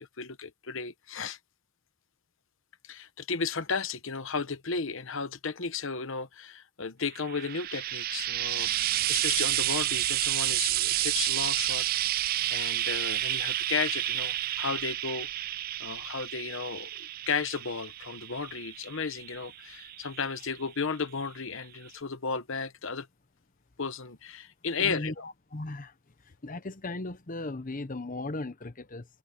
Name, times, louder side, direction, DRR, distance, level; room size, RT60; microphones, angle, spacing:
voice 1, 0.0-1.4 2.8-15.5 15.8-23.1 23.8-25.1, left 5 dB, 60° left, 1.1 m, -34 dB
Frying (food), 7.1-20.6 21.5-21.6, right 14 dB, 40° right, 0.3 m, -30 dB
voice 2, 24.8-25.9 26.4-29.1, left 2 dB, 40° left, 0.9 m, -37 dB
head